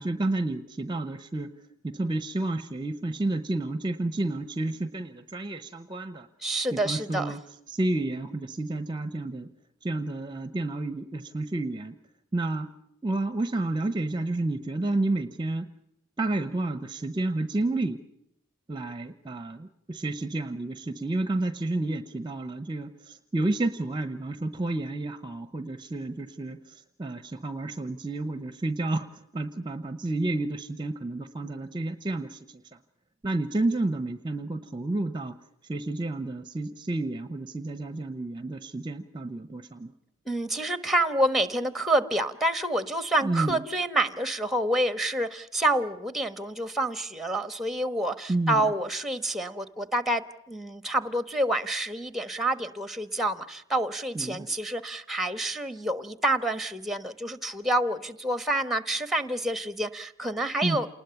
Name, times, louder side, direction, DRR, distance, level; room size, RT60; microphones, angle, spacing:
voice 1, 0.0-1.5 1.8-6.3 6.7-7.4 7.7-9.5 9.8-11.9 12.3-12.7 13.0-15.7 16.2-18.0 18.7-32.4 33.2-35.4 35.7-39.9 43.2-43.6 48.3-48.7 54.1-54.5 60.6-60.8, right 2 dB, 20° right, 11 dB, 0.9 m, -30 dB
voice 2, 6.4-7.3 40.2-60.9, right 1 dB, ahead, 12 dB, 1.2 m, -28 dB
28.5 x 20.0 x 7.1 m, 0.77 s
head